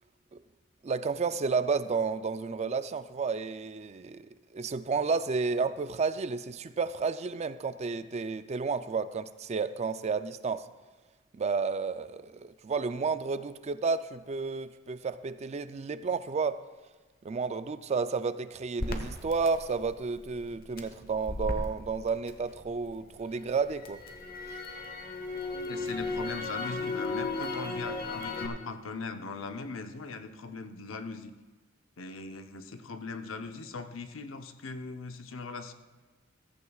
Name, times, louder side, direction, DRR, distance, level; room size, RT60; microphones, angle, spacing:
voice 1, 0.8-10.7 11.3-16.6 17.2-24.0, right 4 dB, 35° right, 12 dB, 0.4 m, -31 dB
Crackle, 18.8-22.9 23.3-28.5, left 2 dB, 50° left, 1.1 m, -36 dB
voice 2, 25.7-31.3 32.0-35.7, left 4 dB, 85° left, 8 dB, 0.8 m, -40 dB
15.0 x 14.0 x 2.4 m, 1.3 s
head